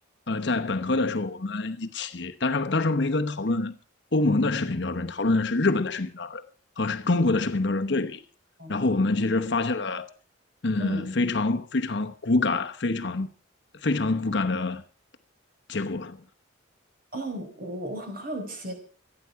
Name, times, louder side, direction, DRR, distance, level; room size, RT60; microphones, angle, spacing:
voice 1, 0.3-3.8 4.1-6.4 6.8-8.2 8.7-10.1 10.6-13.3 13.7-14.8 15.7-16.2, left 2 dB, 55° left, 0.9 m, -26 dB
voice 2, 17.1-18.7, equal, 45° right, 4.6 m, -34 dB
26.0 x 9.7 x 4.6 m
head